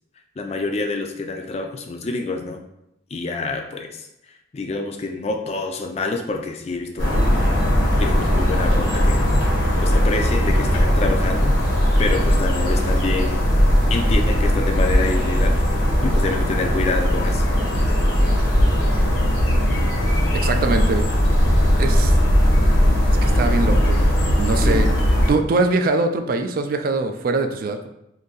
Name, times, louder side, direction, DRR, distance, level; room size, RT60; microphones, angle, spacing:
voice 1, 0.4-2.6 3.1-4.1 4.5-7.3 8.0-9.2 9.8-11.5 12.0-13.5 13.9-15.6 16.0-17.4 24.6-24.9, left 3 dB, 35° left, 4 dB, 0.3 m, -27 dB
sound 1, 7.0-25.3, equal, 80° left, 1.0 m, -18 dB
voice 2, 20.3-21.1 21.8-22.2 23.2-24.1 24.4-24.9 25.3-27.9, right 3 dB, 50° right, 6 dB, 0.3 m, -22 dB
2.6 x 2.6 x 3.8 m, 0.83 s
head